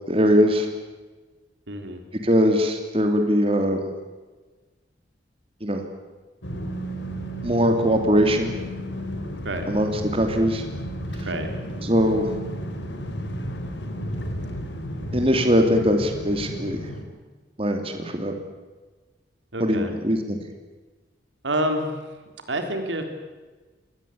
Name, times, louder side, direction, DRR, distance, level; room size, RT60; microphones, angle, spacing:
voice 1, 0.1-0.7 2.2-3.8 5.6-5.8 7.4-8.5 9.7-10.6 11.8-12.3 15.1-16.9 17.6-18.3 19.6-20.4, equal, 30° right, 5 dB, 2.8 m, -21 dB
voice 2, 1.7-2.0 9.4-9.7 11.3-11.5 19.5-20.0 21.4-21.9 22.5-23.0, right 1 dB, 90° right, 6 dB, 3.7 m, -27 dB
sound 1, 6.4-17.0, equal, 85° left, 3.9 m, -33 dB
25.0 x 20.0 x 8.7 m, 1.3 s
head